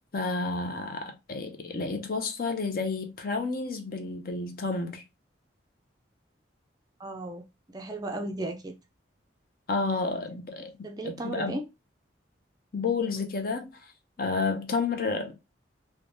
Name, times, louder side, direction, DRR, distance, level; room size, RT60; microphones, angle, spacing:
voice 1, 0.1-5.0 9.7-10.7 11.0-11.6 12.7-13.9 14.2-15.4, left 4 dB, 50° left, 0.5 m, -30 dB
voice 2, 7.0-8.8 10.8-11.6, right 2 dB, 20° right, 0.3 m, -35 dB
3.2 x 2.1 x 2.5 m
head